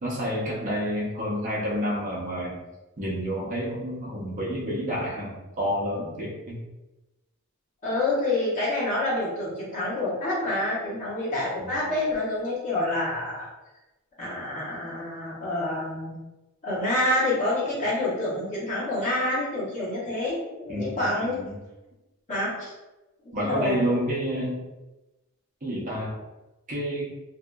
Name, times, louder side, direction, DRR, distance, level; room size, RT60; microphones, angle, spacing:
voice 1, 0.0-2.6 3.0-6.6 11.6-11.8 20.7-21.5 23.3-24.6 25.6-26.1 26.7-27.1, equal, 35° right, -5 dB, 0.7 m, -29 dB
voice 2, 7.8-13.5 14.2-16.2 16.6-21.3 22.3-22.7 23.4-23.8, left 1 dB, 35° left, -7 dB, 1.0 m, -27 dB
2.7 x 2.4 x 2.2 m, 1.0 s
head